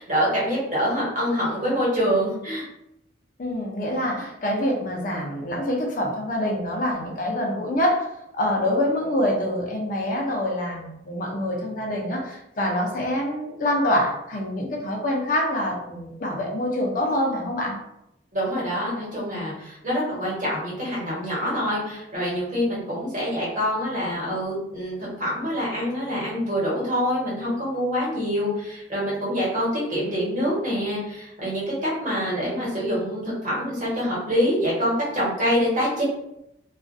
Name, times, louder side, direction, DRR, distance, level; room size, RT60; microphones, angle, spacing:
voice 1, 0.0-2.7 18.3-36.0, equal, 45° right, -7 dB, 1.1 m, -25 dB
voice 2, 3.4-17.8, left 1 dB, 45° left, -1 dB, 0.5 m, -25 dB
2.4 x 2.1 x 2.5 m, 0.82 s
head